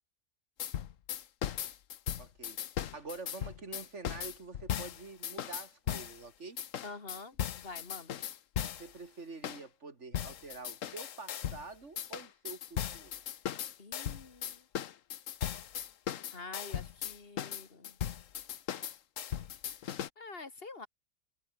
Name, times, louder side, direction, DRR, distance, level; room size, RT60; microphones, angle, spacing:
sound 1, 0.6-6.2 6.6-8.9 9.4-9.6 10.1-11.6 12.0-20.1, left 10 dB, 55° left, 1.2 m, -38 dB
voice 1, 2.2-2.6 2.9-6.6 8.6-13.1, right 3 dB, 45° right, 3.1 m, -47 dB
voice 2, 6.8-8.2 13.8-14.7 16.3-18.0 19.7-19.8 20.2-20.9, left 3 dB, 35° left, 2.6 m, -47 dB
omnidirectional pair, 1.7 m